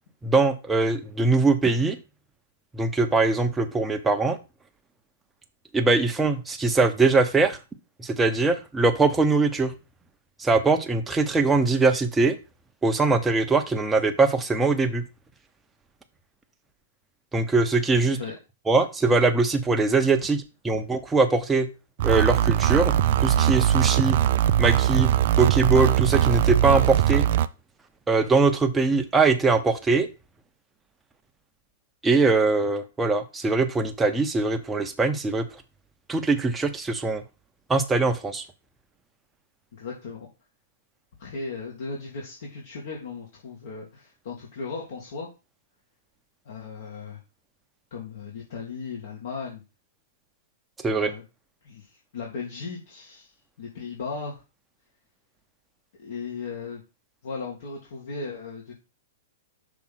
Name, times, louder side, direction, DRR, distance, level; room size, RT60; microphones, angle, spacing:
voice 1, 0.2-2.0 2.7-4.4 5.7-7.6 8.0-9.7 10.4-12.4 12.8-15.0 17.3-18.2 18.7-21.7 22.0-22.9 23.2-24.2 24.6-25.1 25.4-27.3 28.1-30.1 32.0-35.5 36.1-37.2 37.7-38.4 50.8-51.1, right 3 dB, 10° right, 6 dB, 0.9 m, -22 dB
sound 1, 22.0-27.5, right 11 dB, 55° right, 0.4 m, -21 dB
voice 2, 39.7-40.3 41.2-45.3 46.4-47.2 47.9-49.6 50.9-51.2 51.6-53.3 53.6-54.4 56.0-56.8 57.2-58.7, left 4 dB, 60° left, -2 dB, 1.9 m, -36 dB
6.1 x 3.6 x 5.8 m, 0.29 s
hypercardioid pair, 115°, 0 cm